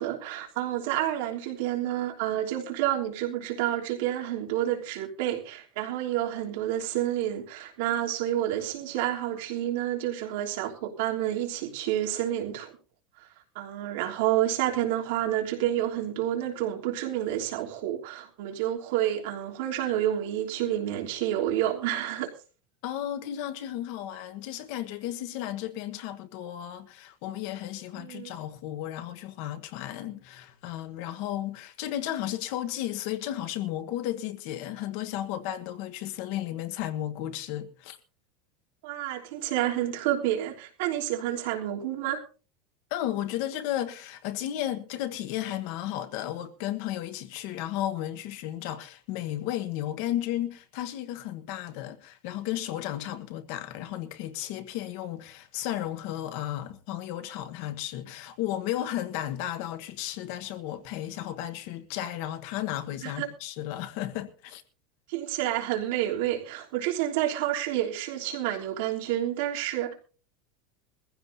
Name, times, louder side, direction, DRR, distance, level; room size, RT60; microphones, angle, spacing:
voice 1, 0.0-12.7 13.5-22.3 28.0-28.3 38.8-42.2 63.0-63.3 65.1-69.9, right 12 dB, 65° right, 3.2 m, -29 dB
voice 2, 22.8-38.0 42.9-64.6, left 12 dB, 50° left, 1.2 m, -34 dB
22.0 x 15.5 x 2.7 m
supercardioid pair, 175°, 0 cm